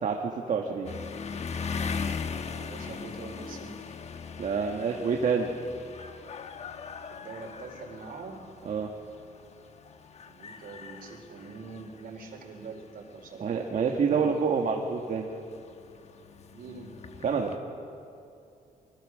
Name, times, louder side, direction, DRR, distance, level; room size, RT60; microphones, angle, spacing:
voice 1, 0.5-0.9 4.4-5.5 8.6-8.9 13.4-15.3 17.2-17.6, right 5 dB, 55° right, 1 dB, 1.7 m, -27 dB
sound 1, 0.8-17.6, left 5 dB, 45° left, 1.1 m, -40 dB
voice 2, 2.6-3.8 7.1-8.4 10.2-14.2 16.5-16.9, right 4 dB, 70° right, 3 dB, 4.1 m, -43 dB
24.5 x 23.5 x 6.4 m, 2.6 s
wide cardioid pair, 145°, 16 cm